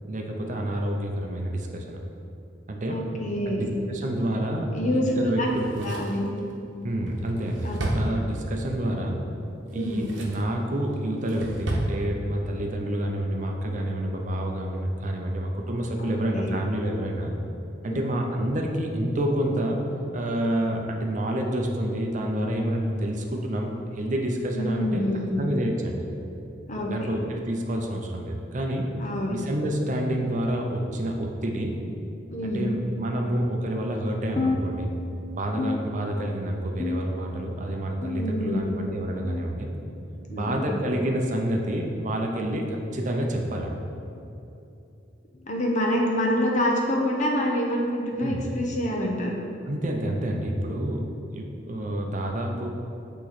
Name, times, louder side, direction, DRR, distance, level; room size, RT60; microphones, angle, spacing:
voice 1, 0.1-2.0 2.7-3.0 3.5-5.9 6.8-9.2 9.7-17.3 17.8-19.8 20.1-25.1 25.4-26.0 26.9-28.9 29.3-31.7 32.4-34.9 35.3-39.7 40.3-43.7 48.2-48.4 49.7-52.7, right 1 dB, 40° right, 1 dB, 0.6 m, -28 dB
voice 2, 2.9-3.7 4.7-5.5 5.8-6.3 7.6-7.8 9.7-10.1 16.0-16.6 24.5-25.5 26.7-27.1 29.0-29.4 32.3-32.7 38.2-38.7 40.3-40.7 45.5-49.4, equal, 40° left, -1 dB, 0.8 m, -27 dB
Drawer open or close, 5.4-8.7 9.6-10.5 10.9-11.9 12.2-12.3, right 1 dB, 80° right, 0.8 m, -33 dB
sound 1, 34.4-35.2 35.6-36.4 36.8-37.4 38.0-38.6 39.2-39.6 40.5-40.7 41.7-41.9 42.9-43.1 44.1-44.3 45.3-45.5 46.6-46.7 47.8-47.9 49.0-49.1, left 3 dB, 25° left, 0.4 m, -32 dB
8.5 x 3.0 x 4.1 m, 2.8 s
head